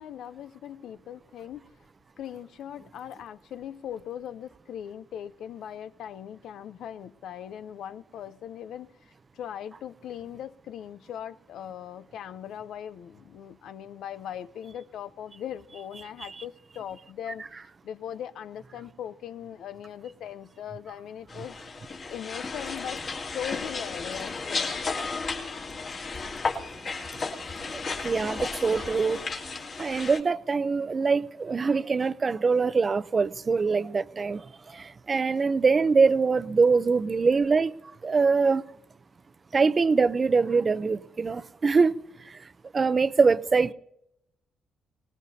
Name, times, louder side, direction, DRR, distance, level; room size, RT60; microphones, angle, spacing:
voice 1, 0.0-1.7 2.2-21.6 22.1-23.0 23.3-24.8, left 10 dB, 75° left, 0.7 m, -40 dB
sound 1, 21.3-30.2, left 4 dB, 45° left, 2.9 m, -34 dB
voice 2, 27.7-29.2 29.8-34.4 34.7-37.7 38.0-38.6 39.5-41.9 42.7-43.7, right 4 dB, 35° right, 0.6 m, -23 dB
24.5 x 19.0 x 2.8 m
cardioid pair, 90°, 0 cm